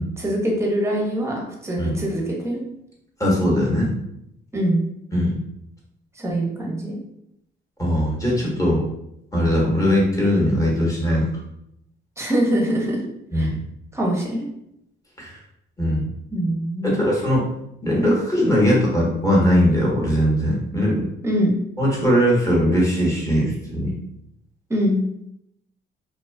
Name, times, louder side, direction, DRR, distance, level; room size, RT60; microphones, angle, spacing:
voice 1, 0.2-2.6 4.5-4.8 6.2-7.0 12.2-13.0 13.3-13.5 13.9-14.5 16.3-17.0 21.2-21.6 24.7-25.0, right 1 dB, 15° right, -1 dB, 0.7 m, -23 dB
voice 2, 3.2-3.9 5.1-5.4 7.8-8.8 9.3-11.3 13.3-13.5 15.2-15.4 15.8-16.1 16.8-17.4 17.8-21.1 21.8-24.0, equal, 15° left, -4 dB, 1.0 m, -20 dB
2.5 x 2.2 x 2.2 m, 0.78 s
cardioid pair, 90°, 20 cm